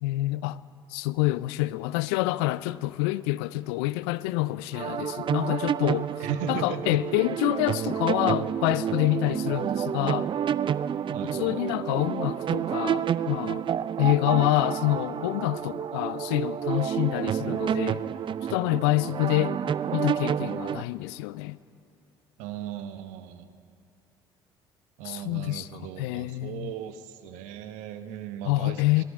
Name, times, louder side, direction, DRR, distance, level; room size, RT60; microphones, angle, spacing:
voice 1, 0.0-0.6 0.9-6.1 6.5-10.3 11.2-13.6 14.0-18.0 18.5-19.6 19.9-21.6 25.0-26.7 28.4-29.0, left 18 dB, 70° left, 0.4 m, -27 dB
sound 1, 4.7-20.8, right 9 dB, 40° right, 0.4 m, -29 dB
voice 2, 6.2-7.0 11.1-11.6 22.4-23.5 25.0-29.0, right 8 dB, 70° right, 1.0 m, -37 dB
18.0 x 13.0 x 6.3 m
hypercardioid pair, 55°, 13 cm